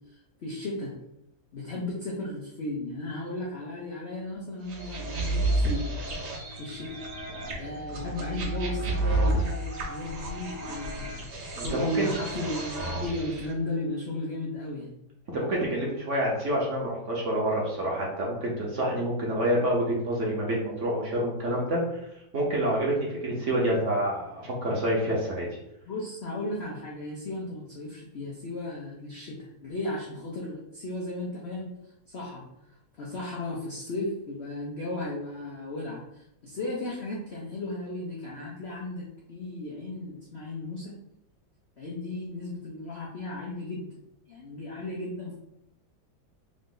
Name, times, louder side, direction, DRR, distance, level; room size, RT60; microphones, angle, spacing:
voice 1, 0.4-1.0 1.5-5.9 6.6-6.9 7.6-14.9 25.9-31.7 32.1-32.5 33.0-40.9 41.8-43.9 44.3-45.4, left 2 dB, 85° left, -4 dB, 0.5 m, -35 dB
sound 1, 4.7-13.5, right 2 dB, 65° right, 1.4 m, -31 dB
voice 2, 11.5-12.1 15.3-22.0 22.3-22.9 23.2-25.5, right 1 dB, 50° right, -3 dB, 1.0 m, -27 dB
3.8 x 2.6 x 3.7 m, 0.80 s
omnidirectional pair, 2.1 m